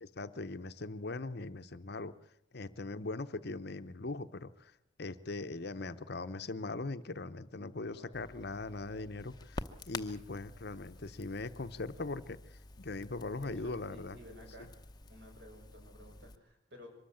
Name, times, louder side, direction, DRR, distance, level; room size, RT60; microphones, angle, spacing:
voice 1, 0.0-2.1 2.5-14.2 14.6-14.7, left 3 dB, 55° left, 11 dB, 0.8 m, -40 dB
voice 2, 7.9-8.2 13.4-14.7 15.1-16.9, equal, 55° right, 2 dB, 6.3 m, -54 dB
Crackle, 8.1-16.4, left 2 dB, 20° left, 0.8 m, -49 dB
23.5 x 13.5 x 8.7 m, 0.74 s
head